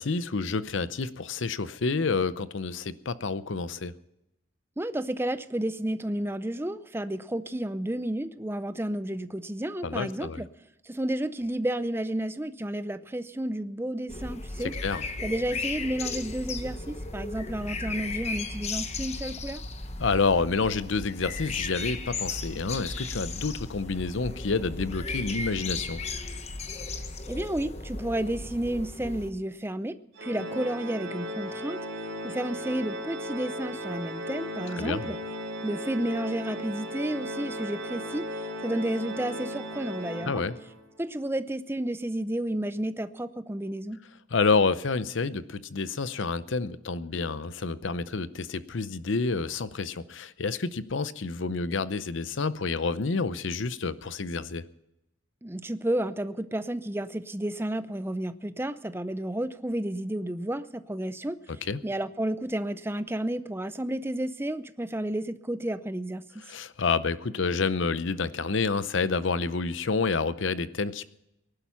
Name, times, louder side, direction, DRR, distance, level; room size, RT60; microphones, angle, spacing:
voice 1, 0.0-3.9 9.8-10.4 14.6-15.0 20.0-26.0 34.8-35.1 40.2-40.6 44.3-54.6 61.6-61.8 66.5-71.0, left 4 dB, 70° left, 15 dB, 0.7 m, -29 dB
voice 2, 4.8-10.5 10.9-14.8 15.2-19.6 27.3-31.8 32.2-35.2 35.6-38.3 38.6-40.4 41.0-44.0 55.4-61.4 61.8-66.3, right 1 dB, 10° right, 13 dB, 0.5 m, -31 dB
sound 1, 14.1-29.3, left 3 dB, 35° left, 1.0 m, -35 dB
Organ, 30.2-40.9, equal, 75° right, 3.8 m, -36 dB
18.5 x 11.5 x 5.8 m, 0.87 s
head